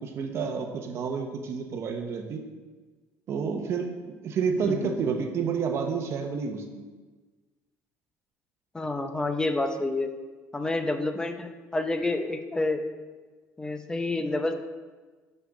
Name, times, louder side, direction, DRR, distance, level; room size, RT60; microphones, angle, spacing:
voice 1, 0.0-2.4 3.3-6.8, right 6 dB, 50° right, 4 dB, 0.9 m, -30 dB
voice 2, 4.7-5.0 8.7-10.1 10.5-12.8 13.6-14.5, left 2 dB, 10° left, 7 dB, 0.7 m, -29 dB
5.9 x 5.4 x 6.4 m, 1.4 s
cardioid pair, 125°, 6 cm